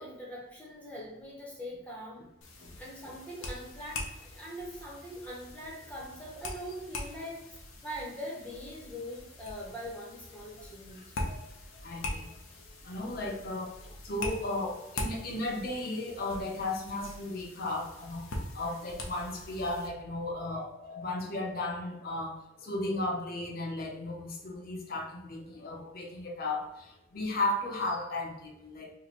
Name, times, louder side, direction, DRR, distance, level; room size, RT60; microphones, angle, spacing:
voice 1, 0.0-2.2 2.8-11.1, equal, 5° left, -4 dB, 0.8 m, -42 dB
sound 1, 2.4-19.9, left 2 dB, 90° left, 0.6 m, -43 dB
voice 2, 10.9-11.4 11.8-12.3 12.8-13.8 14.0-28.9, left 2 dB, 45° left, 0 dB, 0.6 m, -35 dB
2.9 x 2.2 x 4.1 m, 0.90 s
head